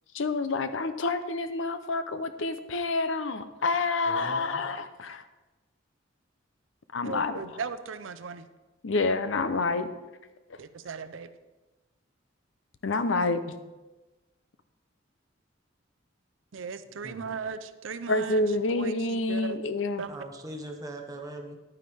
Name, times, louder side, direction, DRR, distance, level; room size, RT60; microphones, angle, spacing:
voice 1, 0.1-5.2 6.9-7.4 8.8-9.9 12.8-13.5 18.1-20.0, left 3 dB, 80° left, 11 dB, 0.7 m, -28 dB
voice 2, 4.1-4.6 17.0-17.3 20.1-21.6, right 1 dB, 20° right, 2 dB, 1.1 m, -41 dB
voice 3, 7.0-8.5 10.6-11.3 16.5-18.4 18.7-19.6 20.0-20.2, right 5 dB, 85° right, 12 dB, 0.5 m, -37 dB
10.5 x 9.2 x 3.5 m, 1.1 s
head